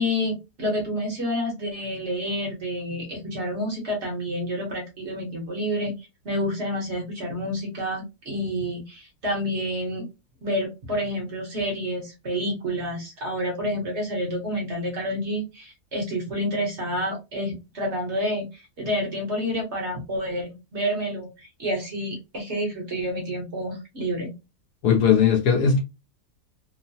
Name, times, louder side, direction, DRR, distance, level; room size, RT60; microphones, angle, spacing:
voice 1, 0.0-10.1 10.4-24.3, equal, 50° right, 1.1 m, -29 dB
voice 2, 24.8-25.8, left 7 dB, 70° left, 1.0 m, -18 dB
3.0 x 2.0 x 2.6 m
omnidirectional pair, 1.7 m